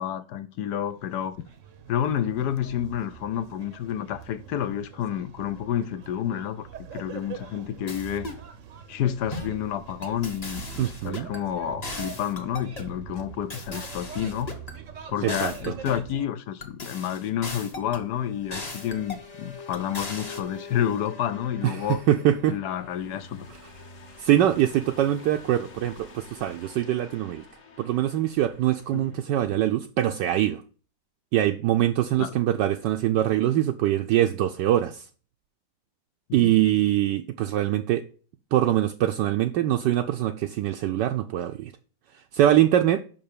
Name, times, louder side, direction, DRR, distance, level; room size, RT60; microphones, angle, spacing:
voice 1, 0.0-1.5 1.9-8.3 8.9-14.6 15.1-22.0 22.5-23.5 28.9-29.1 32.2-32.4 36.3-36.5, left 10 dB, 65° left, 1.2 m, -30 dB
sound 1, 0.8-16.3, right 7 dB, 55° right, 1.0 m, -43 dB
sound 2, 7.9-8.4 9.3-9.6 10.0-11.4 11.8-12.9 13.5-14.8 15.3-16.1 16.6-18.1 18.5-19.3 19.7-20.4, left 2 dB, 25° left, 1.1 m, -38 dB
voice 2, 10.8-11.3 15.2-15.8 21.6-22.5 23.6-23.7 24.2-27.4 27.8-30.6 31.3-35.1 36.3-38.0 38.5-41.7 42.3-43.0, right 12 dB, 75° right, 1.2 m, -23 dB
sound 3, 16.7-29.1, left 4 dB, 45° left, 1.7 m, -47 dB
5.9 x 5.5 x 6.7 m
omnidirectional pair, 2.1 m